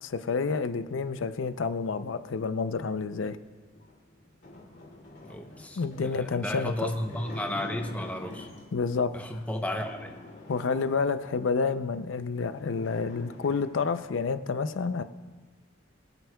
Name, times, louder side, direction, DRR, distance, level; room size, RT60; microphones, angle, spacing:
voice 1, 0.0-3.4 5.8-6.9 8.7-9.1 10.5-15.0, left 4 dB, 80° left, 12 dB, 0.5 m, -29 dB
sound 1, 3.7-8.9 9.4-11.5 12.0-12.1 12.3-14.1, left 2 dB, 60° left, 2.3 m, -46 dB
voice 2, 5.3-8.5 9.1-10.1, left 1 dB, 10° left, 4 dB, 0.7 m, -33 dB
21.5 x 8.0 x 2.3 m, 1.3 s
head